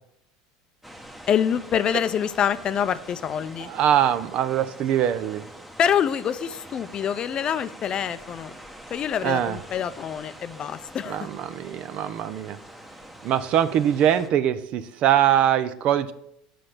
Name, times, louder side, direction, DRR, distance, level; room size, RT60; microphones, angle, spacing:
sound 1, 0.8-14.3, equal, 5° right, 1.0 m, -44 dB
voice 1, 1.3-3.7 5.8-8.5 8.9-11.3, left 8 dB, 40° left, 14 dB, 0.5 m, -26 dB
voice 2, 3.6-5.4 9.2-9.6 11.1-12.6 13.2-16.1, right 10 dB, 55° right, 14 dB, 0.6 m, -22 dB
7.8 x 5.1 x 6.0 m, 0.74 s
supercardioid pair, 100°, 2 cm